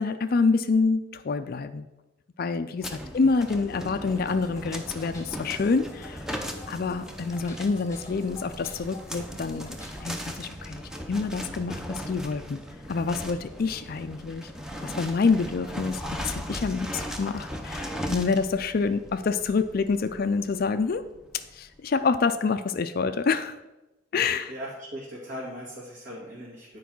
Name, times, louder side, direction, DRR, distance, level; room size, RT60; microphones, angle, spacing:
voice 1, 0.0-1.9 2.4-6.2 6.7-9.8 10.0-10.8 11.1-12.6 12.9-14.5 14.8-21.0 21.5-23.6 24.1-24.5, left 4 dB, 45° left, 10 dB, 0.4 m, -27 dB
sound 1, 2.8-21.6, equal, 5° right, 0.6 m, -38 dB
sound 2, 4.1-10.2, left 1 dB, 15° left, 1.1 m, -48 dB
voice 2, 24.5-26.8, equal, 55° right, -6 dB, 1.9 m, -39 dB
9.4 x 4.7 x 6.0 m, 1.0 s
head